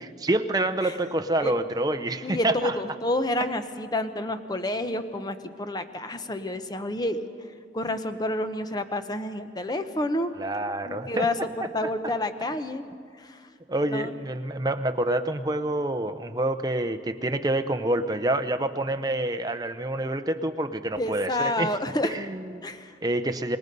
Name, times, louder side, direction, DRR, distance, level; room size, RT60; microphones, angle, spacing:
voice 1, 0.0-2.8 10.4-11.3 11.8-11.9 13.7-21.7 22.0-22.6 23.0-23.6, right 1 dB, 20° right, 7 dB, 0.7 m, -27 dB
voice 2, 2.2-10.3 10.8-12.8 13.2-13.5 13.9-14.1 21.0-22.2 22.6-23.0, left 1 dB, 20° left, 9 dB, 0.8 m, -29 dB
25.5 x 20.0 x 5.4 m, 2.2 s
head